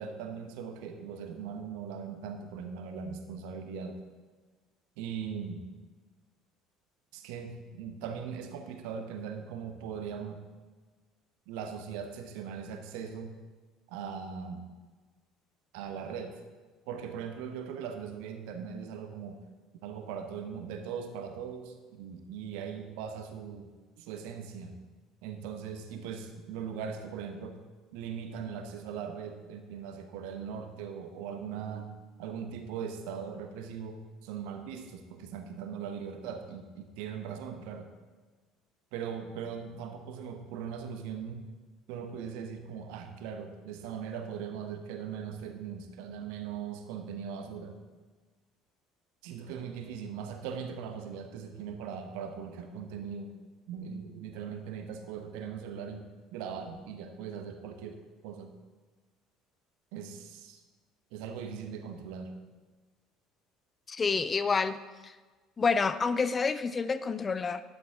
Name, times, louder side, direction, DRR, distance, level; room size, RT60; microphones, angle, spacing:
voice 1, 0.0-4.0 5.0-5.7 7.1-10.4 11.5-13.3 13.9-14.7 15.7-16.4 16.9-19.4 19.8-23.7 24.0-24.8 25.2-27.6 27.9-31.9 32.2-37.9 38.9-41.5 41.9-47.8 49.2-53.3 53.7-56.0 56.3-58.5 59.9-60.6 61.1-62.4, right 7 dB, 65° right, 6 dB, 1.2 m, -40 dB
voice 2, 63.9-65.1 65.6-67.6, left 5 dB, 30° left, 13 dB, 0.5 m, -28 dB
12.5 x 11.0 x 3.8 m, 1.4 s
figure-of-eight pair, 60°, 0 cm